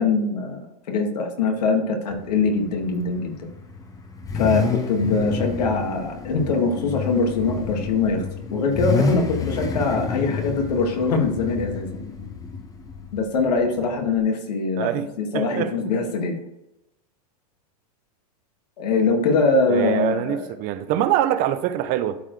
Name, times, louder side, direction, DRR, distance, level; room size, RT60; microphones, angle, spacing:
voice 1, 0.0-3.5 4.3-8.2 8.5-12.0 13.1-14.9 15.2-16.4 18.8-20.4, left 4 dB, 80° left, 2.2 m, -23 dB
Car / Idling / Accelerating revving vroom, 2.1-14.2, left 4 dB, 15° left, 1.0 m, -29 dB
voice 2, 14.8-15.1 15.3-15.7 19.7-22.2, right 11 dB, 45° right, 0.8 m, -24 dB
12.5 x 4.6 x 3.3 m
hypercardioid pair, 125°, 20 cm